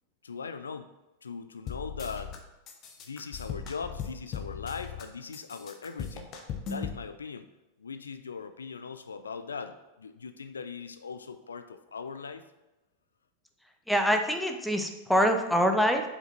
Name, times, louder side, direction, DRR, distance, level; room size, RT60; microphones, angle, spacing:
voice 1, 0.2-0.9 1.2-2.3 3.1-6.3 6.6-7.5 7.8-12.4, left 5 dB, 70° left, 10 dB, 0.3 m, -40 dB
sound 1, 1.7-2.4 2.7-5.0 5.3-7.0, left 7 dB, 35° left, 0.9 m, -38 dB
voice 2, 13.9-16.0, equal, ahead, 5 dB, 0.6 m, -25 dB
5.1 x 5.1 x 4.2 m, 1.0 s
figure-of-eight pair, 90°, 0 cm